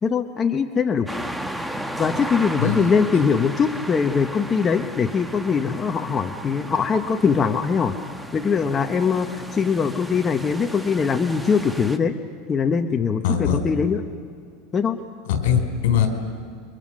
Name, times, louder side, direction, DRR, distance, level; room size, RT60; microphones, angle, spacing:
voice 1, 0.0-1.1 2.0-7.9 8.3-12.1 12.5-14.0 14.7-15.0, left 6 dB, 20° left, 6 dB, 0.9 m, -22 dB
sound 1, 1.1-12.0, equal, 5° right, 1.0 m, -34 dB
voice 2, 2.6-2.9 13.2-13.6 15.3-16.1, left 8 dB, 70° left, 6 dB, 4.3 m, -21 dB
29.5 x 23.5 x 6.4 m, 2.3 s
supercardioid pair, 150°, 0 cm